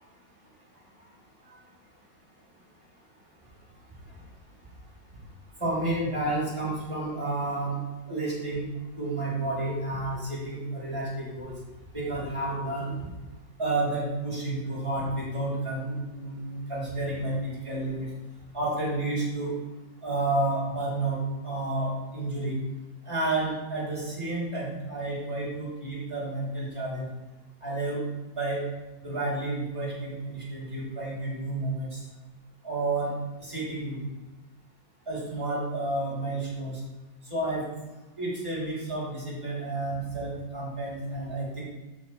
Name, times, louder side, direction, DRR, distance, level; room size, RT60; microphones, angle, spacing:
voice 1, 5.6-7.8 8.1-8.6 9.0-11.5 11.9-12.9 13.6-18.1 18.5-19.5 20.0-22.5 23.0-27.1 27.6-28.0 28.3-28.6 29.0-32.0 32.6-33.1 33.4-34.0 35.1-36.8 37.3-37.7 38.2-41.6, right 2 dB, 15° right, -7 dB, 3.3 m, -30 dB
12.0 x 5.3 x 3.3 m, 1.1 s
omnidirectional pair, 1.9 m